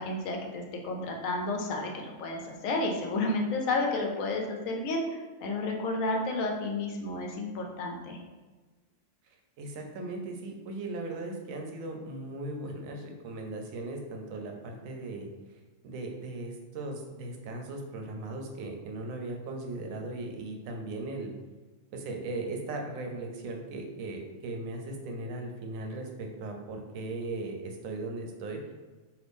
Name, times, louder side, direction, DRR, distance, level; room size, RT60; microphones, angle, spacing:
voice 1, 0.0-8.2, left 2 dB, 80° left, 1 dB, 1.0 m, -31 dB
voice 2, 9.6-15.3 15.8-21.3 21.9-28.6, right 2 dB, 85° right, 2 dB, 1.0 m, -38 dB
2.7 x 2.6 x 3.4 m, 1.3 s
omnidirectional pair, 1.4 m